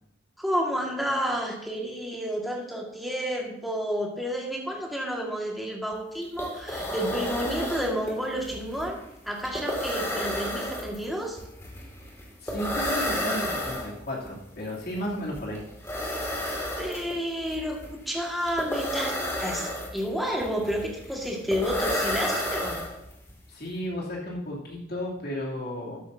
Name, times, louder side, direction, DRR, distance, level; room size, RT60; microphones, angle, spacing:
voice 1, 0.4-9.0 9.3-11.4 16.8-19.1 19.4-22.8, equal, ahead, -2 dB, 1.9 m, -30 dB
sound 1, 5.9-6.0 6.2-23.3, left 1 dB, 15° left, 2.3 m, -32 dB
voice 2, 12.4-15.6 23.5-26.0, equal, 55° left, -3 dB, 3.0 m, -33 dB
13.0 x 10.0 x 2.8 m, 0.81 s
head